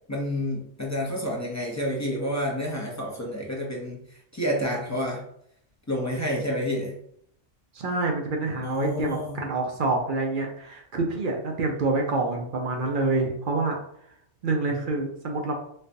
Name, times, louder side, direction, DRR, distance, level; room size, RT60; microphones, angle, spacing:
voice 1, 0.1-5.2 5.9-7.0 8.6-9.5, equal, 20° left, -3 dB, 0.4 m, -29 dB
voice 2, 7.7-13.8 14.4-15.5, right 3 dB, 55° right, 1 dB, 0.6 m, -27 dB
4.1 x 2.3 x 2.6 m, 0.68 s
omnidirectional pair, 1.3 m